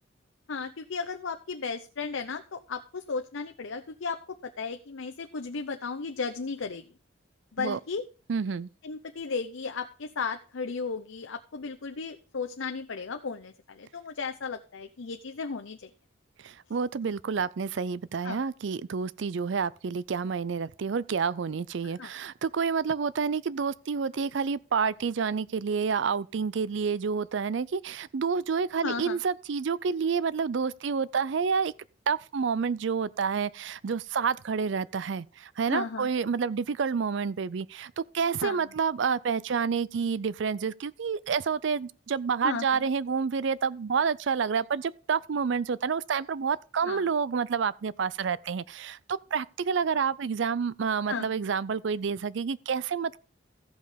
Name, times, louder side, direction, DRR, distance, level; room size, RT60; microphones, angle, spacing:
voice 1, 0.5-6.9 7.5-8.0 8.8-15.9 18.2-18.4 21.8-22.1 28.8-29.2 35.7-36.1 38.4-38.7 42.4-42.9 46.8-47.1 51.1-51.4, left 4 dB, 80° left, 0.7 m, -35 dB
voice 2, 8.3-8.7 16.4-31.7 32.1-53.2, right 6 dB, 70° right, 0.4 m, -29 dB
14.5 x 5.4 x 5.0 m
head